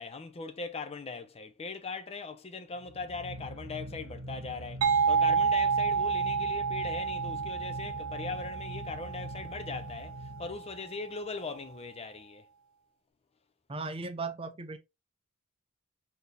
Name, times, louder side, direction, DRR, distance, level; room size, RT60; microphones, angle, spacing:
voice 1, 0.0-12.5, left 4 dB, 30° left, 0.5 m, -40 dB
sound 1, 2.8-11.1, right 1 dB, 55° right, 1.7 m, -43 dB
sound 2, 4.8-10.3, right 6 dB, 85° right, 0.5 m, -29 dB
voice 2, 13.7-14.8, right 3 dB, 25° right, 0.5 m, -37 dB
4.1 x 2.8 x 3.2 m
head